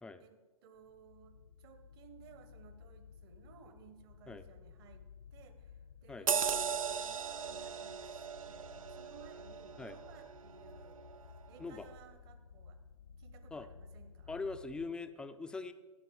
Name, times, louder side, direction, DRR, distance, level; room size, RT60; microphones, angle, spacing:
voice 1, 0.2-5.0 5.3-11.0 11.5-12.8 13.2-14.4, right 7 dB, 45° right, 10 dB, 1.5 m, -59 dB
sound 1, 0.7-14.9, left 6 dB, 65° left, 0.7 m, -56 dB
sound 2, 6.3-11.2 11.7-11.8, right 7 dB, 75° right, 0.6 m, -38 dB
voice 2, 14.3-15.7, left 3 dB, 5° left, 10 dB, 0.5 m, -42 dB
15.5 x 5.3 x 7.3 m, 1.3 s
figure-of-eight pair, 115°, 17 cm